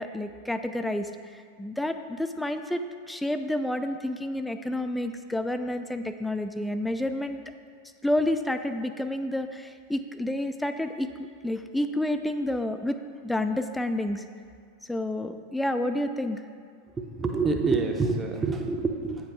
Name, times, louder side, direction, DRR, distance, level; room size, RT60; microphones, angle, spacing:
voice 1, 0.0-7.4 8.0-14.2 14.9-16.4, left 1 dB, 5° left, 8 dB, 0.4 m, -29 dB
voice 2, 17.1-19.2, right 4 dB, 20° right, 4 dB, 0.8 m, -26 dB
9.0 x 5.0 x 4.8 m, 2.2 s
figure-of-eight pair, 90°, 0 cm